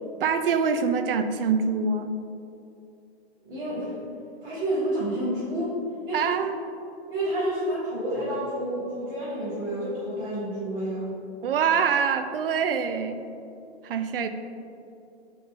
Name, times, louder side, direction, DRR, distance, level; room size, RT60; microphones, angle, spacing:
voice 1, 0.2-2.1 6.1-6.6 11.4-13.2 13.8-14.3, right 6 dB, 60° right, 9 dB, 0.4 m, -24 dB
voice 2, 3.4-3.9 4.4-5.7 6.0-6.3 7.1-11.0, right 1 dB, 10° right, -16 dB, 1.5 m, -29 dB
5.3 x 4.5 x 4.2 m, 2.6 s
hypercardioid pair, 170°, 33 cm